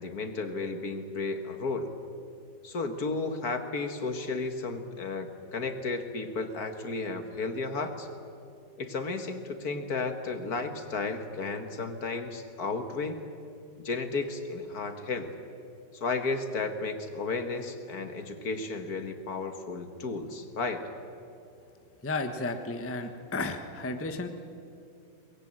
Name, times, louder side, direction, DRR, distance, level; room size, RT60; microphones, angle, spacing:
voice 1, 0.0-1.9 2.6-8.1 8.8-13.2 13.8-15.3 15.9-20.8, left 3 dB, 55° left, 7 dB, 1.9 m, -33 dB
voice 2, 22.0-24.3, left 3 dB, 10° left, 7 dB, 1.0 m, -33 dB
23.5 x 20.0 x 9.0 m, 2.6 s
omnidirectional pair, 2.0 m